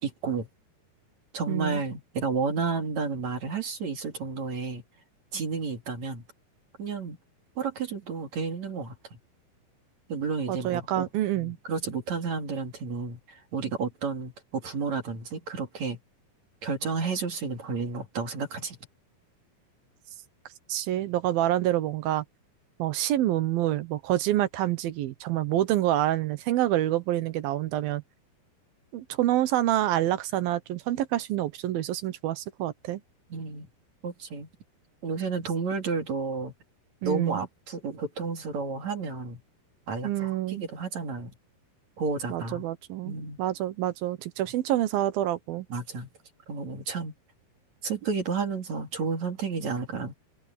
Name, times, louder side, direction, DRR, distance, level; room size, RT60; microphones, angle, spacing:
voice 1, 0.0-0.5 1.3-4.8 5.3-6.2 6.8-7.2 7.6-9.0 10.1-11.1 11.4-16.0 16.6-18.8 33.3-33.7 34.0-34.5 35.0-36.5 37.0-39.4 39.9-41.3 42.0-42.6 43.0-43.4 45.7-46.1 46.5-47.1 47.8-50.1, right 5 dB, 50° right, 3.8 m, -31 dB
voice 2, 1.5-1.8 10.5-11.6 20.7-22.2 22.8-28.0 28.9-33.0 37.0-37.5 40.0-40.6 42.3-45.7, right 13 dB, 75° right, 2.9 m, -27 dB
open air
omnidirectional pair, 4.5 m